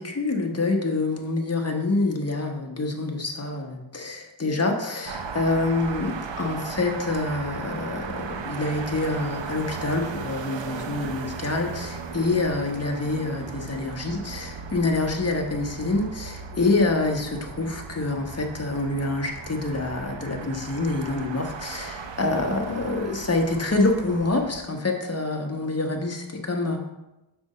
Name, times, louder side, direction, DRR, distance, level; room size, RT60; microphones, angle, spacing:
voice 1, 0.0-26.8, left 2 dB, 30° left, 2 dB, 1.2 m, -26 dB
sound 1, 5.0-24.6, right 5 dB, 65° right, 0.7 m, -37 dB
6.1 x 5.1 x 4.3 m, 0.96 s
wide cardioid pair, 75°, 47 cm